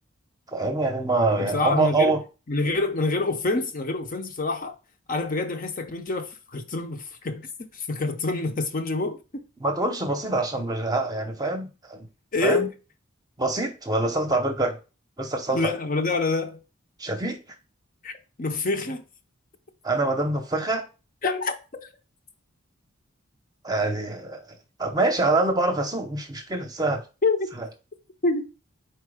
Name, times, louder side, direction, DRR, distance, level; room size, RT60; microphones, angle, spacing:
voice 1, 0.5-2.2 9.6-12.1 12.4-12.7 13.4-14.8 15.2-15.7 17.0-17.4 19.8-20.9 23.6-24.4 24.8-27.0 27.6-27.7, right 2 dB, 20° right, 0.8 m, -25 dB
voice 2, 1.4-2.2 2.5-4.7 5.1-7.5 7.7-9.4 12.3-12.7 15.5-16.6 18.0-19.0 21.2-21.9 27.2-27.4 28.2-28.5, left 3 dB, 40° left, 0.7 m, -26 dB
4.5 x 4.3 x 4.8 m
head